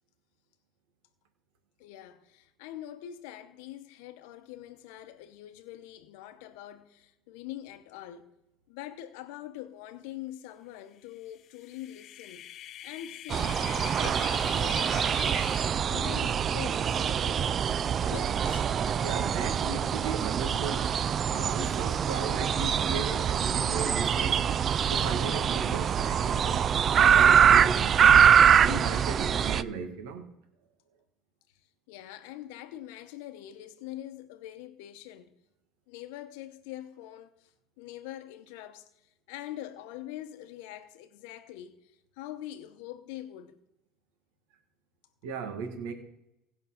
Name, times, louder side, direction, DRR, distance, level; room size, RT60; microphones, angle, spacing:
voice 1, 1.8-8.3 8.7-12.5 12.8-15.6 15.9-17.4 18.0-18.7 27.2-27.3 31.9-35.3 35.9-43.6, left 13 dB, 85° left, 0.8 m, -44 dB
sound 1, 11.4-15.7, left 12 dB, 50° left, 0.3 m, -43 dB
sound 2, 13.3-29.6, right 8 dB, 40° right, 0.3 m, -24 dB
voice 2, 19.0-21.0 21.3-24.5 24.9-26.7 27.0-28.0 28.6-30.2 45.2-45.9, right 4 dB, 85° right, 1.7 m, -36 dB
16.5 x 5.6 x 5.6 m
supercardioid pair, 115°, 0 cm